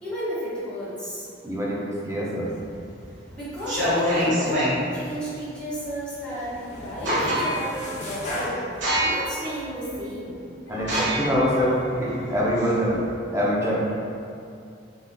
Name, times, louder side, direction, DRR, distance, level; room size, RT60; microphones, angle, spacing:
voice 1, 0.0-1.3 3.3-4.6 4.9-10.4, equal, 5° left, -13 dB, 1.2 m, -32 dB
voice 2, 1.4-2.5 10.7-13.0 13.3-13.9, equal, 15° right, -6 dB, 0.5 m, -24 dB
sound 1, 2.6-3.0 3.5-4.8 6.4-6.5 6.8-7.7 8.2-8.4 8.8-9.4 9.9-10.0 10.8-13.1, equal, 70° right, 1.3 m, -25 dB
sound 2, 3.6-4.4 4.9-5.4 5.7-8.6, left 1 dB, 40° left, 0.6 m, -37 dB
sound 3, 7.1-8.1 10.3-12.5, left 1 dB, 85° left, 0.7 m, -41 dB
3.5 x 2.8 x 2.3 m, 2.5 s
head